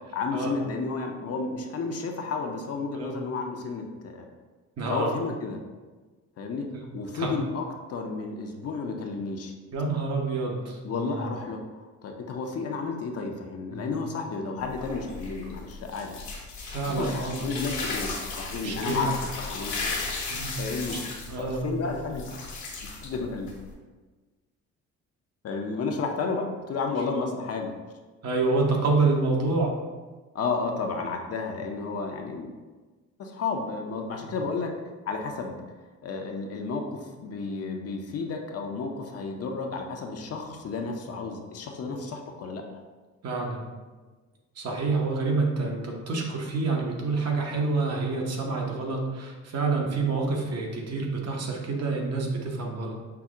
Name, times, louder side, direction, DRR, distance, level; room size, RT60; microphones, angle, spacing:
voice 1, 0.1-4.3 4.9-5.6 6.4-6.7 6.9-9.5 10.8-16.2 17.0-20.0 20.6-21.0 21.3-22.3 23.0-23.5 25.4-27.7 30.3-32.5 33.2-34.7 35.1-35.6 36.0-42.6, left 4 dB, 55° left, 3 dB, 0.6 m, -32 dB
voice 2, 4.8-5.1 6.7-6.8 7.1-7.3 9.7-11.2 13.7-13.9 16.6-17.4 18.5-19.1 20.3-20.6 20.9-21.0 21.3-21.6 28.2-29.7 34.1-34.3 43.2-43.7 44.6-53.0, right 3 dB, 55° right, 0 dB, 0.9 m, -28 dB
sound 1, 14.6-23.7, left 3 dB, 75° left, 1.1 m, -35 dB
5.7 x 2.1 x 3.6 m, 1.3 s
cardioid pair, 90°, 30 cm